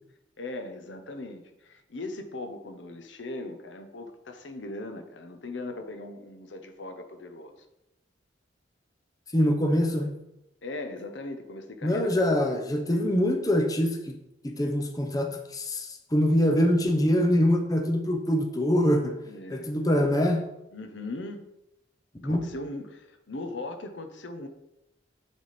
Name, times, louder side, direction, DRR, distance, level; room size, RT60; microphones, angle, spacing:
voice 1, 0.4-7.7 10.6-12.3 19.3-19.8 20.7-21.5 22.2-24.5, left 2 dB, 75° left, 6 dB, 0.8 m, -39 dB
voice 2, 9.3-10.1 11.8-14.2 14.4-19.1 19.5-20.4 22.2-22.4, equal, 20° left, 4 dB, 0.6 m, -24 dB
9.3 x 3.5 x 4.2 m, 0.89 s
head